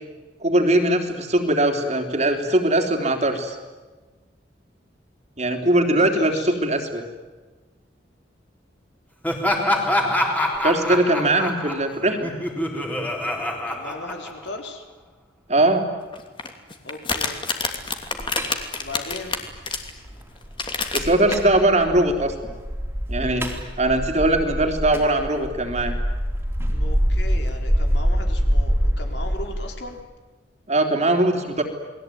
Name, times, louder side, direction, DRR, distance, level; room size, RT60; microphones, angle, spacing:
voice 1, 0.4-3.6 5.4-7.0 10.6-12.3 15.5-15.9 20.9-22.5 23.1-23.5 23.8-25.9 30.7-31.6, right 1 dB, 35° right, 4 dB, 3.6 m, -20 dB
voice 2, 5.6-6.6 13.7-14.8 16.8-17.4 18.8-19.4 26.7-30.0, left 2 dB, 65° left, 4 dB, 4.4 m, -37 dB
Laughter, 9.2-14.7, left 1 dB, 10° left, 3.8 m, -25 dB
sound 1, 16.1-19.9 20.4-21.3, left 4 dB, 25° left, 2.8 m, -27 dB
sound 2, 17.8-30.0, equal, 10° right, 3.7 m, -25 dB
29.5 x 21.5 x 9.4 m, 1.3 s
head